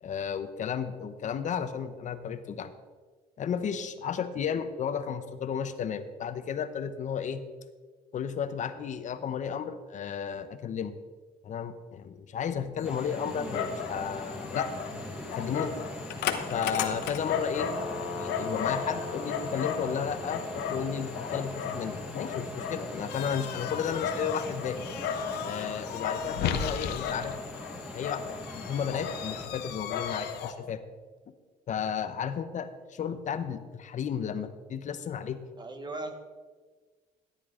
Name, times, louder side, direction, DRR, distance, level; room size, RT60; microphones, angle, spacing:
voice 1, 0.0-2.7 3.4-7.4 8.1-10.9 11.4-15.7 16.5-17.8 18.2-24.8 25.4-27.4 27.9-30.8 31.7-35.4, left 7 dB, 45° left, 11 dB, 0.9 m, -33 dB
Dog, 12.8-30.5, left 7 dB, 80° left, 1.0 m, -35 dB
sound 1, 12.8-29.5, equal, 5° right, 1.7 m, -41 dB
voice 2, 35.6-36.1, right 2 dB, 25° right, 7 dB, 1.4 m, -37 dB
14.0 x 10.0 x 3.8 m, 1.4 s
cardioid pair, 110°, 17 cm